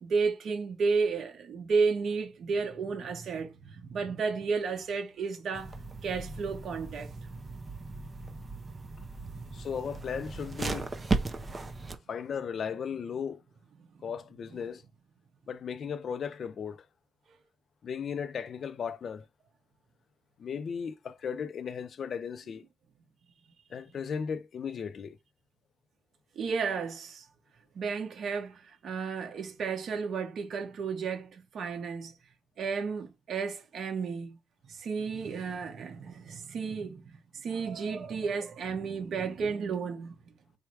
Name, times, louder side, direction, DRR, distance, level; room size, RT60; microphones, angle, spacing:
voice 1, 0.0-5.7 6.0-7.4 9.3-9.4 13.8-13.9 17.3-17.4 26.3-27.2 27.7-32.1 32.6-34.4 34.7-40.1, right 5 dB, 55° right, 1.0 m, -32 dB
sound 1, 5.5-12.0, right 3 dB, 20° right, 0.5 m, -36 dB
voice 2, 9.5-10.9 12.1-13.4 14.0-14.8 15.5-16.8 17.8-19.2 20.4-22.6 23.7-25.2, left 7 dB, 45° left, 0.4 m, -36 dB
4.5 x 2.2 x 4.6 m
cardioid pair, 160°, 0 cm